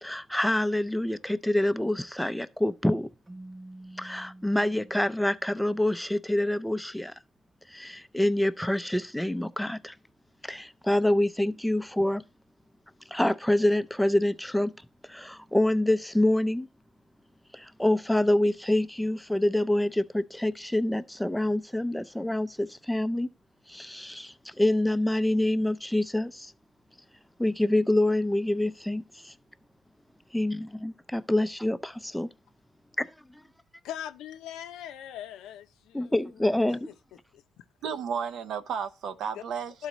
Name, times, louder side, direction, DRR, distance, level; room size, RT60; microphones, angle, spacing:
voice 1, 0.0-3.1 4.0-7.1 7.7-9.9 10.4-12.2 13.1-14.7 15.1-16.7 17.5-23.3 23.7-26.5 27.4-29.3 30.3-32.3 33.0-33.4 35.9-36.9, left 1 dB, 5° left, 0.5 m, -26 dB
Keyboard (musical), 3.3-6.0, right 1 dB, 25° right, 0.8 m, -48 dB
voice 2, 33.8-36.4 36.9-37.6 39.3-39.4 39.8-39.9, left 10 dB, 90° left, 0.5 m, -41 dB
voice 3, 37.8-39.9, right 7 dB, 75° right, 0.7 m, -33 dB
12.0 x 4.0 x 3.0 m
cardioid pair, 90°, 0 cm